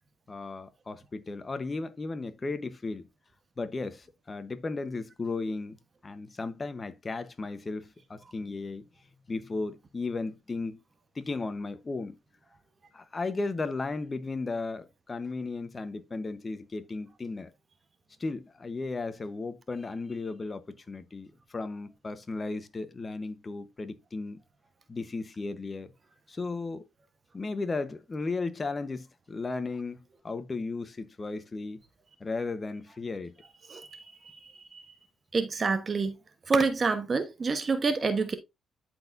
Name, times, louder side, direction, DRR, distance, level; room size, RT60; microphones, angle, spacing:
voice 1, 0.3-3.1 3.6-5.8 6.0-8.8 9.3-10.8 11.1-12.1 12.9-17.5 18.2-24.4 24.9-25.9 26.3-26.8 27.3-30.0 30.2-31.8 32.2-33.3, left 3 dB, 30° left, 1.1 m, -35 dB
voice 2, 35.3-36.1 36.5-38.4, right 4 dB, 40° right, 1.2 m, -27 dB
11.5 x 4.5 x 2.7 m
cardioid pair, 75°, 0 cm